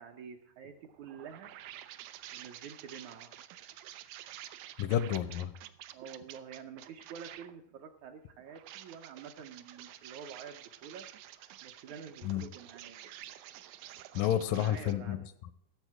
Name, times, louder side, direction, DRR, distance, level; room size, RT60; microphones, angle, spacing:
voice 1, 0.0-1.5 2.3-3.4 5.9-11.1 11.6-13.1 14.5-15.3, right 7 dB, 75° right, 4 dB, 1.8 m, -48 dB
sound 1, 0.6-7.6 8.4-14.9, right 12 dB, 90° right, 1.7 m, -50 dB
voice 2, 4.8-5.5 12.2-12.4 14.2-15.2, left 11 dB, 80° left, 14 dB, 2.1 m, -30 dB
16.5 x 7.1 x 4.8 m, 0.73 s
omnidirectional pair, 4.1 m